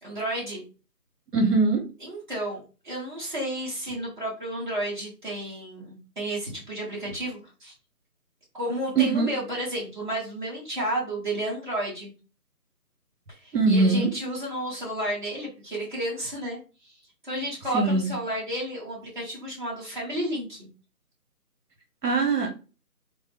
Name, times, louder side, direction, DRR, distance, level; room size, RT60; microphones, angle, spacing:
voice 1, 0.0-0.6 2.0-7.7 8.5-12.1 13.4-16.9 17.2-20.7, right 1 dB, 30° right, -6 dB, 1.5 m, -32 dB
voice 2, 1.3-1.8 9.0-9.3 13.5-14.1 17.7-18.1 22.0-22.5, right 3 dB, 75° right, 2 dB, 1.1 m, -21 dB
3.8 x 2.1 x 3.4 m, 0.34 s
figure-of-eight pair, 175°, 47 cm